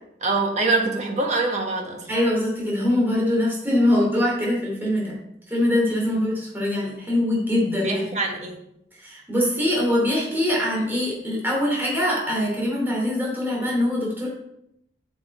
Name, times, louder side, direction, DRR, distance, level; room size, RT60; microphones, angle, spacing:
voice 1, 0.2-2.1 7.8-8.6, right 3 dB, 40° right, 2 dB, 1.4 m, -24 dB
voice 2, 2.1-5.2 5.5-8.0 9.0-14.3, left 1 dB, 10° right, -4 dB, 2.7 m, -23 dB
8.1 x 6.3 x 4.3 m, 0.77 s
head